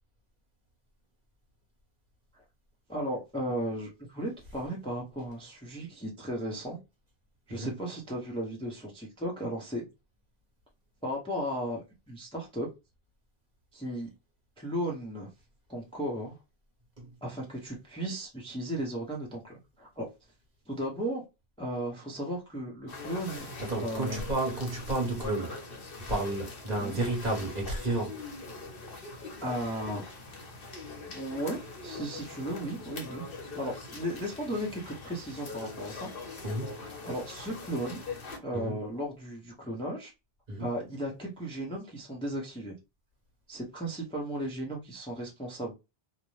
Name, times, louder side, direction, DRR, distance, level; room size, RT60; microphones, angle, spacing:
voice 1, 2.9-6.8 7.5-9.8 11.0-11.8 12.1-12.7 13.7-14.1 14.6-15.3 15.7-16.3 17.2-20.1 20.7-21.2 21.6-23.5 23.8-24.3 26.8-27.0 29.4-30.0 31.1-33.2 33.6-36.1 37.0-38.0 38.4-40.1 40.6-42.7 43.5-45.7, right 1 dB, 5° left, 0.6 m, -35 dB
sound 1, 22.9-38.4, left 3 dB, 60° left, 1.0 m, -43 dB
voice 2, 23.6-25.6 26.1-28.2 36.4-36.7 38.5-38.8 40.5-40.7, right 2 dB, 45° right, 1.1 m, -31 dB
2.5 x 2.1 x 3.0 m
omnidirectional pair, 1.1 m